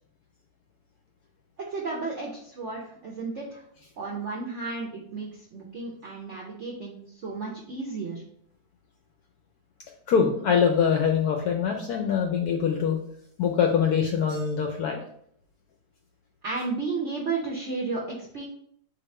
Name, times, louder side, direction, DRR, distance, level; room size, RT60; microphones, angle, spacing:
voice 1, 1.7-3.6 4.0-8.2 16.4-18.4, right 4 dB, 65° right, -2 dB, 0.7 m, -33 dB
voice 2, 10.1-13.0 13.4-15.0, left 7 dB, 75° left, 2 dB, 0.9 m, -23 dB
3.9 x 2.9 x 4.1 m, 0.66 s
omnidirectional pair, 2.1 m